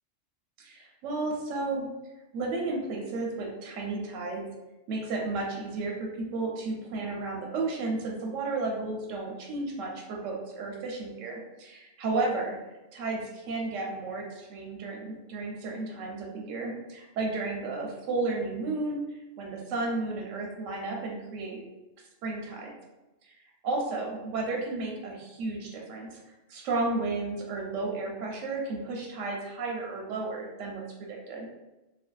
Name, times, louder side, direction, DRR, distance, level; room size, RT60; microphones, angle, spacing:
voice 1, 0.6-1.9 2.3-4.5 4.9-12.6 12.9-19.0 19.4-21.6 22.2-22.7 23.2-23.4 23.6-26.2 26.5-31.5, right 3 dB, 85° right, -1 dB, 0.9 m, -33 dB
2.5 x 2.2 x 2.2 m, 1.0 s
omnidirectional pair, 1.3 m